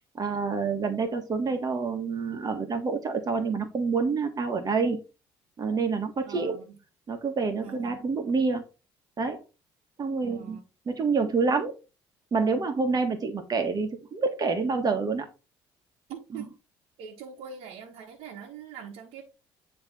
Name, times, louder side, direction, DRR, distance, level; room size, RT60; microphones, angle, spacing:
voice 1, 0.1-5.0 5.6-6.6 7.1-8.6 9.2-9.4 10.0-10.6 10.9-11.7 12.3-15.3 16.3-16.4, right 4 dB, 40° right, 1.6 m, -27 dB
voice 2, 6.2-6.8 7.6-8.1 10.2-10.6 16.1-16.5 17.0-19.2, right 7 dB, 75° right, 1.4 m, -43 dB
9.5 x 3.4 x 3.6 m
supercardioid pair, 75°, 10 cm